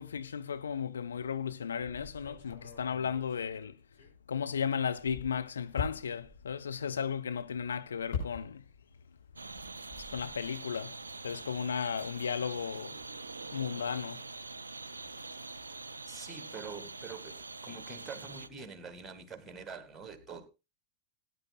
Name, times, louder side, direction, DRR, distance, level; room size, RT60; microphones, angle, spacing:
voice 1, 0.0-3.8 4.3-8.6 10.1-11.0 11.2-13.0 13.5-14.2, left 7 dB, 70° left, 0.5 m, -35 dB
sound 1, 1.8-4.5 4.8-8.9 9.2-10.5, left 5 dB, 55° left, 6.2 m, -43 dB
sound 2, 9.4-18.5, right 3 dB, 75° right, 0.5 m, -44 dB
voice 2, 16.1-20.5, right 5 dB, 10° right, 2.0 m, -45 dB
19.5 x 9.5 x 2.4 m
figure-of-eight pair, 90°, 0 cm